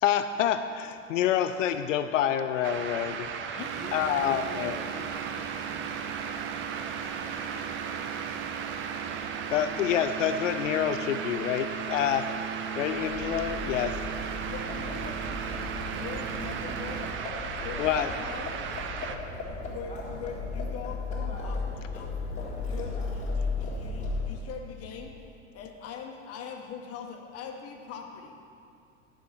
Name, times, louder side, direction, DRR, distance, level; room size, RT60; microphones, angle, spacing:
voice 1, 0.0-4.8 9.5-12.2 12.8-13.9 17.8-18.1, left 10 dB, 75° left, 10 dB, 0.5 m, -27 dB
sound 1, 2.6-19.2, right 6 dB, 30° right, 0.7 m, -36 dB
sound 2, 3.6-17.2, right 8 dB, 55° right, 1.0 m, -39 dB
voice 2, 3.7-8.1 12.1-12.2 13.7-13.9 17.6-17.8, right 1 dB, 10° right, 0 dB, 1.4 m, -46 dB
Livestock farm animals working animals, 12.9-24.5, left 3 dB, 20° left, 2.1 m, -35 dB
voice 3, 14.4-17.0 17.6-18.5 19.0-19.1 19.4-21.0 21.4-22.2 22.6-28.3, left 6 dB, 40° left, 3 dB, 1.2 m, -42 dB
11.5 x 5.7 x 5.8 m, 2.5 s
hypercardioid pair, 85°, 38 cm